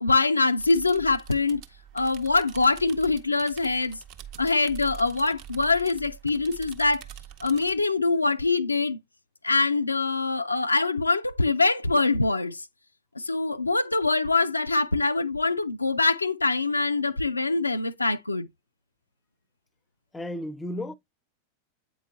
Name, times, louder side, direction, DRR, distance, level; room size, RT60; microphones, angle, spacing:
voice 1, 0.0-1.6 1.9-4.0 4.4-7.0 7.4-9.0 9.4-12.6 13.2-18.5, left 3 dB, 80° left, 0.3 m, -24 dB
sound 1, 0.6-7.7, right 10 dB, 45° right, 0.7 m, -45 dB
voice 2, 20.1-20.9, left 1 dB, 10° left, 0.5 m, -33 dB
8.3 x 4.5 x 2.6 m
figure-of-eight pair, 90°, 0 cm